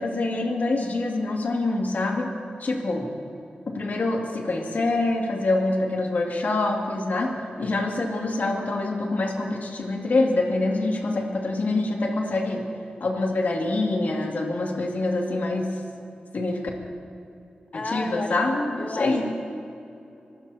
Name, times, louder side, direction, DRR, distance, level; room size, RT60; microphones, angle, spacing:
voice 1, 0.0-2.3 2.6-3.1 3.7-12.6 13.0-15.8 16.3-16.6 17.7-19.3, left 2 dB, 65° left, 0 dB, 2.5 m, -25 dB
voice 2, 17.7-18.3 18.8-19.4, left 2 dB, 35° left, 4 dB, 0.7 m, -32 dB
24.5 x 16.0 x 2.9 m, 2.7 s
cardioid pair, 75°, 3 cm